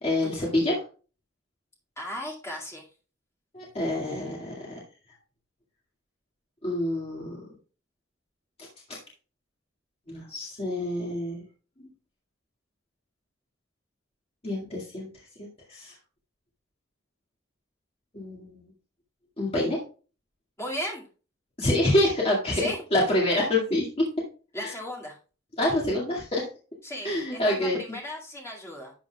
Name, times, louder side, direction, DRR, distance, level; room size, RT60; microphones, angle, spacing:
voice 1, 0.0-0.8 3.5-4.8 6.6-7.4 8.6-8.7 10.1-11.4 14.4-15.1 15.4-15.9 18.1-18.6 19.4-19.8 21.6-22.6 22.9-24.1 24.6-24.7 25.6-26.4 27.0-27.8, left 1 dB, 30° left, -3 dB, 2.1 m, -26 dB
voice 2, 2.0-2.9 20.6-21.0 22.5-22.8 24.5-25.2 26.8-28.9, equal, 15° left, -2 dB, 2.2 m, -36 dB
11.5 x 7.2 x 2.3 m, 0.37 s
head